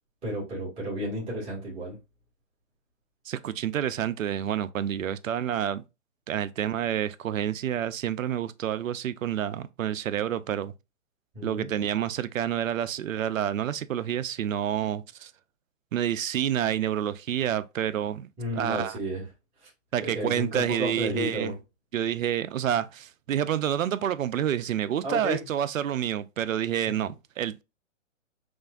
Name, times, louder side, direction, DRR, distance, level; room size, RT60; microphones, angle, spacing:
voice 1, 0.2-2.0 11.3-11.8 18.4-19.3 19.6-19.7 20.0-21.6 25.0-25.5, equal, 15° right, 1.7 m, -32 dB
voice 2, 3.3-5.8 6.3-10.7 11.4-15.3 15.9-18.3 18.5-19.0 19.9-21.5 21.9-27.6, right 10 dB, 85° right, 0.6 m, -28 dB
6.1 x 2.6 x 2.3 m
hypercardioid pair, 150°, 38 cm